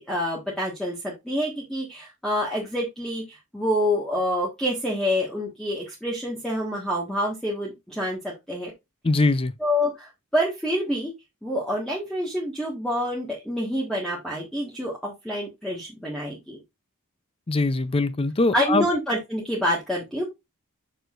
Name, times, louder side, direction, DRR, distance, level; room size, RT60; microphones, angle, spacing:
voice 1, 0.0-8.7 9.6-11.1 11.4-16.6 18.5-20.2, equal, ahead, 1.5 m, -27 dB
voice 2, 9.0-9.5 17.5-18.9, left 3 dB, 25° left, 0.5 m, -22 dB
6.7 x 6.3 x 2.5 m
head